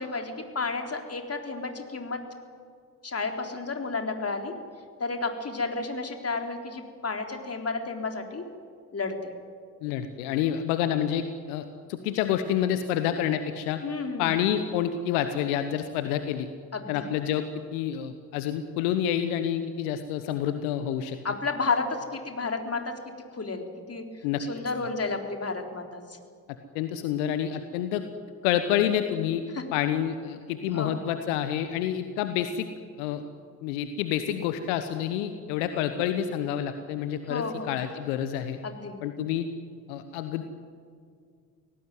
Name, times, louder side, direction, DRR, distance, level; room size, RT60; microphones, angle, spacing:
voice 1, 0.0-2.2 3.0-4.5 5.0-8.4 8.9-9.2 13.8-14.3 16.7-17.0 21.2-22.9 23.3-24.0 24.5-26.0 29.5-29.6 30.7-31.0 37.3-37.8 38.6-39.0, left 4 dB, 30° left, 4 dB, 3.7 m, -31 dB
voice 2, 9.8-13.8 14.2-16.5 16.9-21.2 24.2-24.4 26.7-28.0 28.4-29.4 29.7-32.7 33.0-33.2 33.6-38.6 39.0-39.5 39.9-40.4, left 10 dB, 75° left, 9 dB, 1.2 m, -28 dB
24.5 x 18.0 x 9.5 m, 2.2 s
figure-of-eight pair, 45°, 45 cm